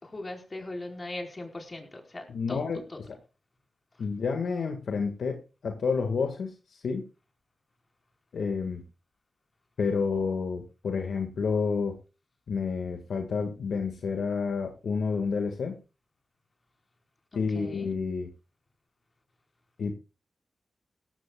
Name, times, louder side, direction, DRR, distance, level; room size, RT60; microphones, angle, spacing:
voice 1, 0.0-2.6 2.9-3.0 17.3-17.9, left 2 dB, 40° left, 4 dB, 4.5 m, -39 dB
voice 2, 2.3-2.8 4.0-6.5 6.8-7.0 8.3-8.8 9.8-12.0 12.5-15.8 17.3-18.3 19.8-19.9, left 5 dB, 85° left, 5 dB, 1.7 m, -29 dB
17.5 x 14.5 x 2.3 m, 0.30 s
cardioid pair, 50°, 0 cm